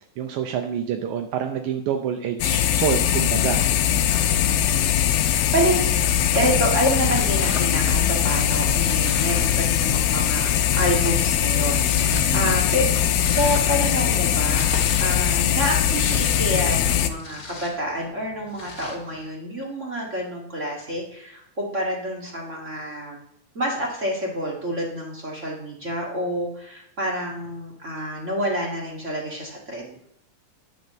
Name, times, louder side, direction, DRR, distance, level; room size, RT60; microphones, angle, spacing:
voice 1, 0.2-3.7 12.1-12.5, right 8 dB, 75° right, 4 dB, 1.8 m, -27 dB
sound 1, 2.4-17.1, left 10 dB, 85° left, 2.6 m, -21 dB
voice 2, 4.4-6.1 6.3-12.9 13.3-14.7 15.0-23.2 23.5-30.0, equal, 30° right, -2 dB, 1.4 m, -28 dB
Walk footsteps, 5.9-15.0, equal, 60° right, 0.9 m, -38 dB
Domestic sounds home sounds, 6.0-19.3, left 3 dB, 35° left, 1.8 m, -40 dB
10.0 x 6.0 x 6.6 m, 0.75 s
omnidirectional pair, 4.2 m